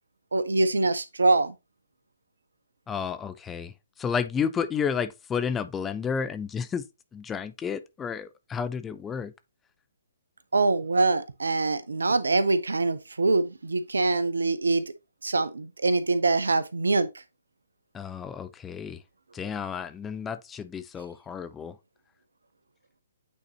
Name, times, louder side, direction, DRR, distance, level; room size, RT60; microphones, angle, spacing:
voice 1, 0.3-1.5 10.5-14.8 15.2-17.1, right 3 dB, 75° right, 0.7 m, -24 dB
voice 2, 2.9-6.9 7.1-9.3 17.9-19.0 19.3-21.8, left 6 dB, 15° left, 0.5 m, -31 dB
8.5 x 4.0 x 2.9 m
figure-of-eight pair, 130°, 0 cm